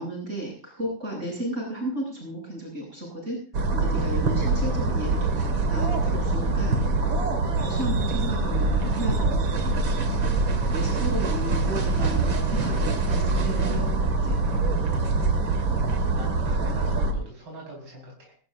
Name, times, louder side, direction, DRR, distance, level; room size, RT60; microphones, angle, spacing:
voice 1, 0.0-3.4 3.7-5.3 5.7-6.8 7.6-9.7 10.7-13.9 14.2-14.4, right 1 dB, 35° right, -2 dB, 8.2 m, -33 dB
sound 1, 3.5-17.1, right 3 dB, 80° right, 2.8 m, -24 dB
voice 2, 11.9-12.3 16.1-18.4, right 1 dB, 60° right, -1 dB, 5.5 m, -41 dB
22.5 x 14.5 x 2.7 m, 0.38 s
omnidirectional pair, 2.2 m